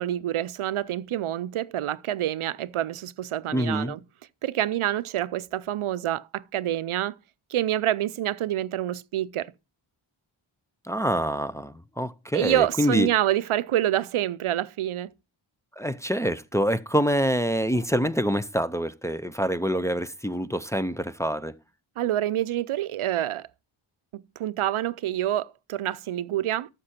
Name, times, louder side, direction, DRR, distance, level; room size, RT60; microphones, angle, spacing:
voice 1, 0.0-4.0 4.4-7.2 7.5-9.5 12.3-15.1 22.0-23.5 24.1-26.7, right 13 dB, 85° right, 0.6 m, -27 dB
voice 2, 3.5-4.0 10.8-13.1 15.8-21.5, equal, 5° left, 0.5 m, -26 dB
12.5 x 6.6 x 4.3 m
wide cardioid pair, 100°, 49 cm